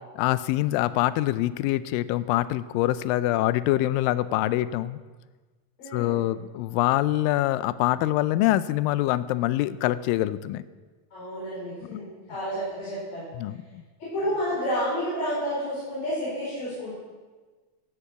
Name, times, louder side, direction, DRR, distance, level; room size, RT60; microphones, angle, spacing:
voice 1, 0.2-5.0 5.9-10.6 11.9-12.0 13.3-13.8, left 15 dB, 80° left, 15 dB, 2.1 m, -25 dB
voice 2, 5.8-6.2 11.1-13.2 14.0-16.9, equal, 65° left, -8 dB, 6.3 m, -30 dB
13.0 x 8.4 x 8.1 m, 1.3 s
omnidirectional pair, 4.3 m